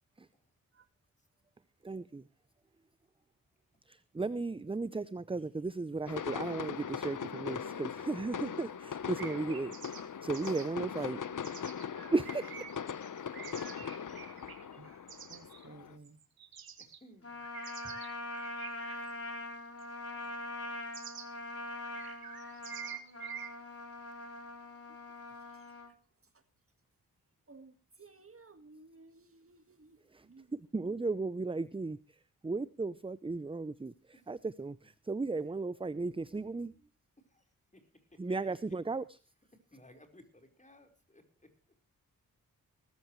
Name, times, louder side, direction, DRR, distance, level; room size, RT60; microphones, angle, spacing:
voice 1, 1.8-2.2 3.9-9.7 10.2-11.2 12.1-12.6 30.1-30.2 30.7-32.0 32.4-36.7 38.2-39.2, right 3 dB, 15° right, 0.6 m, -35 dB
sound 1, 6.1-16.0, left 7 dB, 60° left, 1.0 m, -40 dB
sound 2, 9.1-10.0 10.3-10.7 11.4-15.7 16.0-17.0 17.4-19.1 19.8-19.9 20.9-21.3 21.8-23.5, right 8 dB, 85° right, 2.1 m, -47 dB
voice 2, 14.8-16.2 27.5-31.0, right 3 dB, 40° right, 1.8 m, -57 dB
voice 3, 15.8-16.1 16.8-17.4 37.3-37.4 37.7-37.8 38.1-38.4 39.7-41.5, left 1 dB, 20° left, 4.4 m, -59 dB
Trumpet, 17.2-25.9, left 1 dB, 40° left, 4.3 m, -43 dB
19.5 x 14.0 x 3.1 m
cardioid pair, 75°, 35 cm